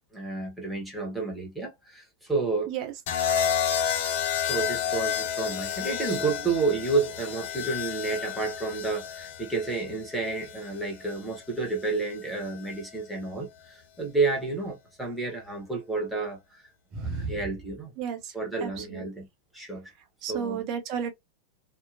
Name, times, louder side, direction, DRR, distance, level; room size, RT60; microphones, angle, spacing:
voice 1, 0.1-2.7 3.7-3.8 4.4-16.6 17.0-17.9 18.3-19.3 19.5-19.9 20.3-20.6, right 3 dB, 5° right, 1.1 m, -30 dB
sound 1, 3.1-11.2 12.4-12.8, left 8 dB, 55° left, 0.5 m, -30 dB
voice 2, 16.9-17.3 18.0-18.3 18.6-19.1 20.2-21.1, right 7 dB, 40° right, 0.7 m, -32 dB
2.8 x 2.1 x 2.6 m
figure-of-eight pair, 90°, 0 cm